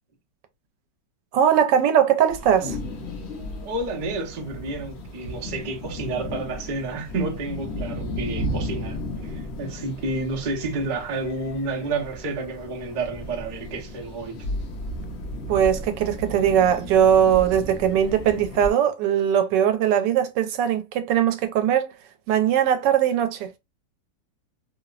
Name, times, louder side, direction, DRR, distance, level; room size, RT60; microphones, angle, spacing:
voice 1, 1.3-2.8 15.5-21.9 22.3-23.5, right 9 dB, 90° right, 1.2 m, -20 dB
sound 1, 2.3-18.7, left 1 dB, 65° left, 0.6 m, -34 dB
voice 2, 3.6-14.5, right 3 dB, 45° right, 0.6 m, -30 dB
3.0 x 2.0 x 2.3 m
omnidirectional pair, 1.8 m